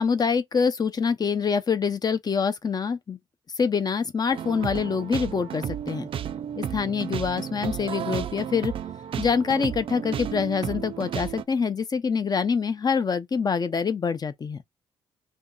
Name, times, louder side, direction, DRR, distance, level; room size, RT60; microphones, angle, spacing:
voice 1, 0.0-3.2 3.6-6.1 6.6-8.7 9.2-14.6, left 5 dB, 35° left, 0.6 m, -25 dB
sound 1, 4.3-11.4, right 9 dB, 55° right, 0.4 m, -33 dB
2.6 x 2.3 x 3.7 m
supercardioid pair, 55°, 11 cm